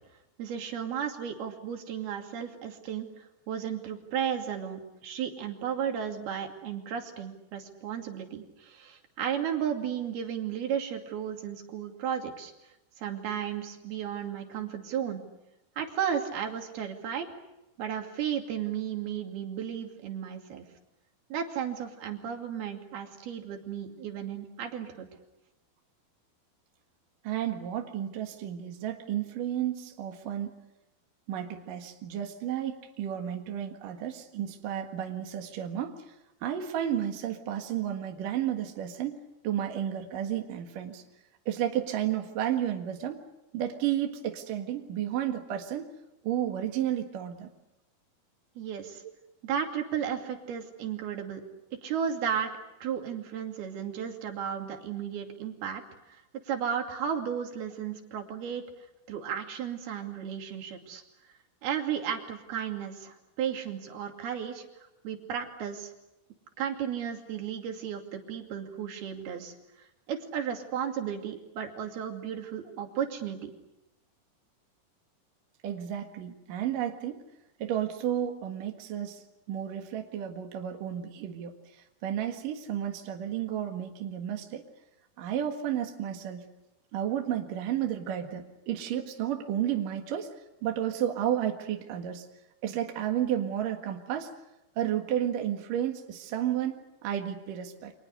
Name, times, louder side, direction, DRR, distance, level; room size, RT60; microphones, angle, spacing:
voice 1, 0.4-12.5 13.0-15.2 15.8-17.3 17.8-20.7 21.3-25.1 48.6-49.0 49.4-51.4 51.8-52.5 52.8-55.8 56.1-58.6 59.1-61.0 61.6-64.7 65.0-65.9 66.6-69.5 70.1-73.5, right 8 dB, 80° right, 4 dB, 4.5 m, -34 dB
voice 2, 27.2-30.6 31.3-36.2 36.4-39.2 39.4-41.0 41.5-43.2 43.5-45.8 46.2-47.5 75.6-77.2 77.6-84.6 85.2-86.4 86.9-90.3 90.6-92.3 92.6-94.3 94.8-97.9, right 10 dB, 65° right, 3 dB, 3.3 m, -32 dB
29.5 x 26.0 x 6.7 m, 0.93 s
omnidirectional pair, 4.4 m